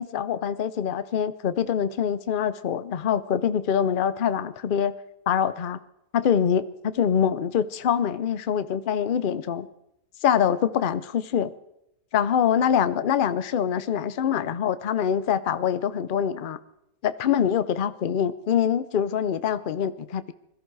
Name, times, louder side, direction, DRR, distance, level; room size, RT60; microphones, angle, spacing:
voice 1, 0.0-4.9 5.3-5.8 6.1-9.7 10.2-11.5 12.1-16.6 17.0-20.3, left 8 dB, 55° left, 14 dB, 0.6 m, -24 dB
21.0 x 13.5 x 4.7 m, 0.81 s
omnidirectional pair, 1.7 m